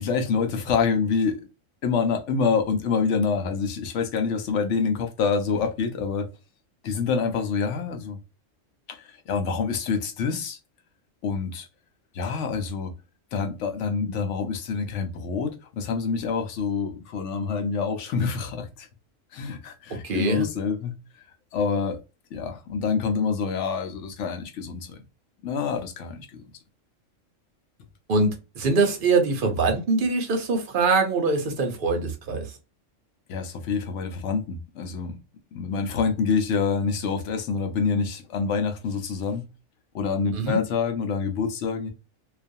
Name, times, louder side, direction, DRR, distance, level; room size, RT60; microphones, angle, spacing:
voice 1, 0.0-1.4 1.8-6.3 6.8-8.2 8.9-10.6 11.2-11.7 12.1-12.9 13.3-18.9 19.3-20.9 21.5-22.0 22.3-25.0 25.4-26.4 33.3-35.2 35.5-39.5 39.9-41.9, left 5 dB, 75° left, 0.9 m, -26 dB
voice 2, 20.0-20.5 28.1-32.6 40.3-40.6, right 3 dB, 50° right, 0.7 m, -23 dB
2.4 x 2.3 x 2.6 m
omnidirectional pair, 1.3 m